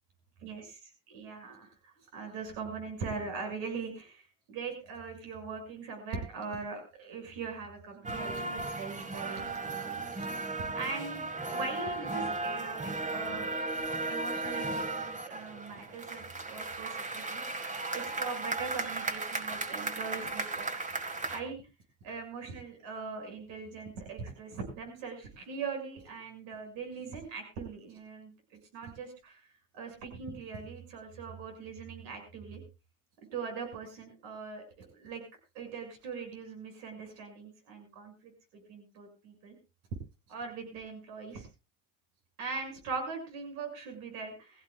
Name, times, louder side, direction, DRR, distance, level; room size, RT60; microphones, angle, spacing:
voice 1, 1.1-10.3 10.5-13.5 14.1-20.7 21.2-21.6 22.0-28.3 28.7-29.4 29.7-32.6 33.3-35.2 35.5-39.5 40.3-41.5 42.4-44.6, right 5 dB, 80° right, 4 dB, 6.7 m, -41 dB
sound 1, 8.0-21.4, right 3 dB, 20° right, 1.8 m, -36 dB
22.0 x 16.0 x 2.4 m, 0.30 s
supercardioid pair, 95°, 37 cm